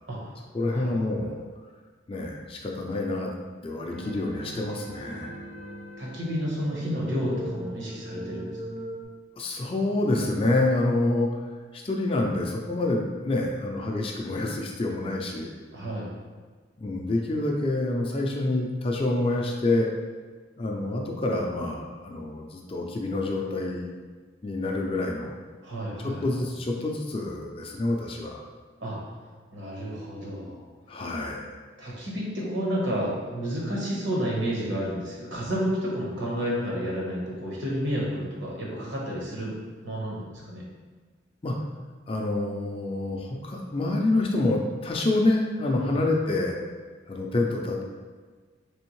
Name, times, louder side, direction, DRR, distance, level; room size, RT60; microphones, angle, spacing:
voice 1, 0.5-1.4 2.1-3.3 3.6-5.3 9.4-11.4 11.7-15.5 16.8-19.9 20.6-23.9 24.4-25.3 26.0-28.4 30.9-31.5 41.4-41.6 42.1-46.6 47.1-47.8, left 2 dB, 30° left, 0 dB, 0.4 m, -27 dB
sound 1, 3.9-9.0, right 1 dB, 35° right, 0.5 m, -40 dB
voice 2, 6.0-8.5 15.7-16.1 25.6-26.2 28.8-29.0 29.5-30.6 31.8-39.5 39.8-40.6 45.8-46.0, equal, 70° right, -4 dB, 1.1 m, -30 dB
3.5 x 3.4 x 3.0 m, 1.5 s
head